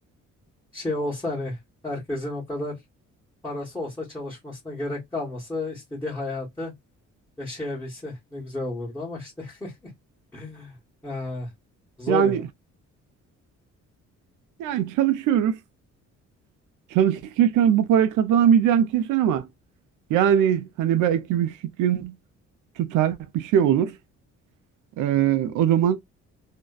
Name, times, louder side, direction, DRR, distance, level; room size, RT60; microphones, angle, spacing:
voice 1, 0.7-2.8 3.4-6.7 7.4-9.7 10.3-10.8 11.0-11.5 12.0-12.4, left 2 dB, 10° left, 1.1 m, -32 dB
voice 2, 12.1-12.5 14.6-15.6 16.9-19.5 20.1-22.2 22.8-24.0 25.0-26.0, right 9 dB, 85° right, 0.5 m, -21 dB
2.5 x 2.2 x 2.2 m
cardioid pair, 90°, 30 cm